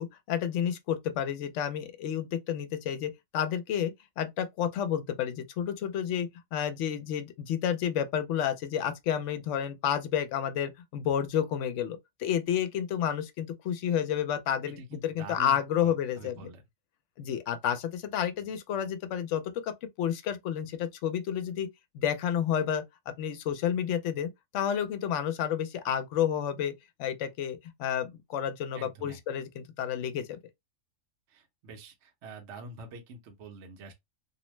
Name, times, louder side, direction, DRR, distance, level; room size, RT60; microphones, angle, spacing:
voice 1, 0.0-16.5 17.2-21.7 21.9-26.7 27.0-30.4, left 9 dB, 70° left, 0.8 m, -30 dB
voice 2, 14.8-16.6 28.7-29.2 31.3-33.9, right 2 dB, 65° right, 1.0 m, -46 dB
2.7 x 2.1 x 3.1 m
omnidirectional pair, 1.4 m